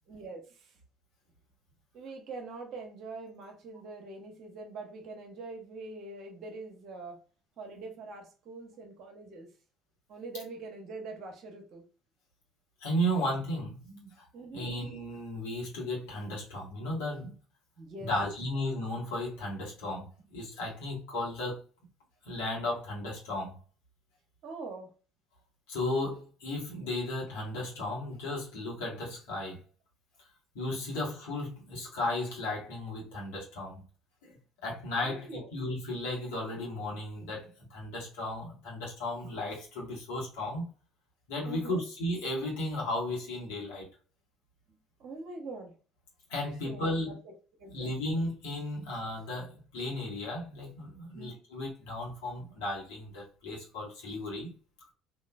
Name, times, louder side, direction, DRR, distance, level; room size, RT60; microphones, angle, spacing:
voice 1, 0.1-0.7 1.9-7.2 7.6-9.5 10.1-11.8 14.3-14.6 17.8-18.1 24.4-24.9 35.0-35.5 41.4-41.8 45.0-45.7 46.6-47.2 47.6-47.9 51.1-51.3, right 3 dB, 55° right, 0.9 m, -43 dB
voice 2, 12.8-14.3 14.5-17.3 18.0-21.6 22.2-23.6 25.7-29.6 30.5-33.8 34.2-40.7 41.3-43.9 46.3-47.1 47.7-54.5, left 1 dB, 70° left, 1.5 m, -35 dB
3.0 x 2.7 x 2.3 m
hypercardioid pair, 55°, 0 cm